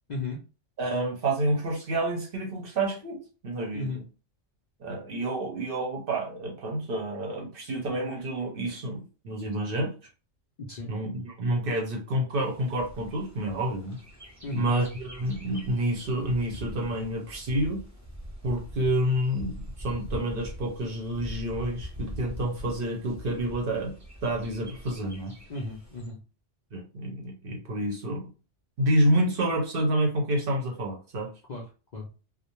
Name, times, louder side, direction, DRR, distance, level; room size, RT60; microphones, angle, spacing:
voice 1, 0.1-0.4 3.7-4.0 10.6-10.9 14.4-14.7 25.5-26.2 31.5-31.6 31.9-32.1, left 2 dB, 55° left, -1 dB, 0.5 m, -35 dB
voice 2, 0.8-3.9 4.8-9.9 10.9-14.0 14.5-17.8 18.4-23.9 24.2-25.3 26.7-28.3 28.8-31.3, right 1 dB, 55° right, 1 dB, 0.8 m, -28 dB
Bird, 12.4-26.1, equal, 25° right, 0.4 m, -43 dB
2.4 x 2.0 x 2.9 m, 0.34 s
omnidirectional pair, 1.2 m